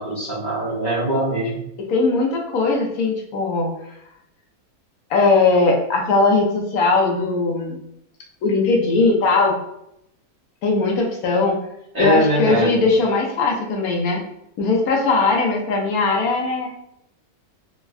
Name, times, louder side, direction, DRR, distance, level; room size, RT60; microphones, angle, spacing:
voice 1, 0.0-1.5 11.9-12.7, right 1 dB, 35° right, -8 dB, 0.8 m, -22 dB
voice 2, 1.9-3.7 5.1-7.8 8.4-9.5 10.6-11.6 12.0-14.2 14.6-16.7, left 3 dB, 75° left, 0 dB, 1.0 m, -19 dB
3.4 x 2.1 x 2.3 m, 0.80 s
omnidirectional pair, 1.6 m